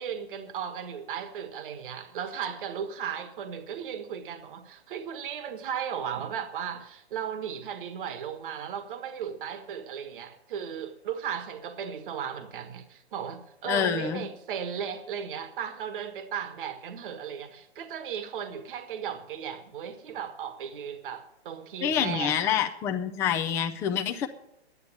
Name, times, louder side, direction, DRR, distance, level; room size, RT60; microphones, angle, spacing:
voice 1, 0.0-22.5, right 8 dB, 55° right, 1.5 m, -36 dB
voice 2, 13.7-14.2 21.8-24.3, left 8 dB, 10° left, 0.4 m, -27 dB
11.0 x 9.7 x 8.4 m
hypercardioid pair, 145°, 32 cm